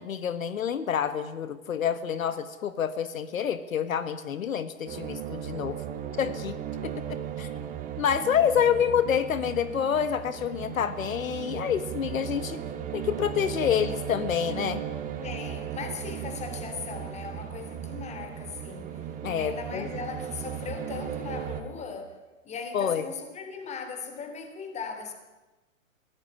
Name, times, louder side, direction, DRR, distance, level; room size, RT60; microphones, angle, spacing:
voice 1, 0.0-5.8 6.2-6.6 6.8-7.5 8.0-12.6 12.9-14.8 19.2-19.9 22.7-23.1, left 8 dB, 75° left, 12 dB, 1.7 m, -28 dB
sound 1, 4.9-21.6, right 9 dB, 20° right, 2.4 m, -36 dB
voice 2, 15.2-19.1 19.3-22.2 22.4-25.1, left 5 dB, 15° left, 7 dB, 3.5 m, -38 dB
23.0 x 17.5 x 9.9 m, 1.1 s
hypercardioid pair, 145°, 41 cm